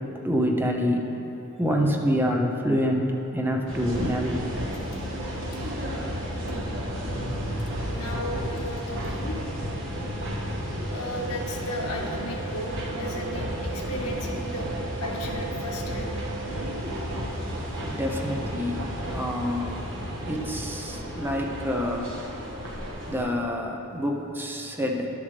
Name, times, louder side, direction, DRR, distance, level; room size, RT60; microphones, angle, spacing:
voice 1, 0.2-1.1 1.6-3.1 3.3-4.5 17.9-18.8 19.1-19.7 20.2-22.1 23.1-25.1, equal, 10° right, 0 dB, 0.7 m, -26 dB
sound 1, 3.7-23.3, equal, 60° right, 1.3 m, -33 dB
Car / Engine, 4.7-13.1, equal, 70° left, 1.1 m, -39 dB
voice 2, 7.9-9.4 10.9-14.7 15.0-16.1 17.8-17.9 23.0-23.1, left 1 dB, 90° left, -1 dB, 1.2 m, -35 dB
sound 2, 10.9-16.9, right 7 dB, 80° right, 0.8 m, -41 dB
11.0 x 7.3 x 3.3 m, 3.0 s
head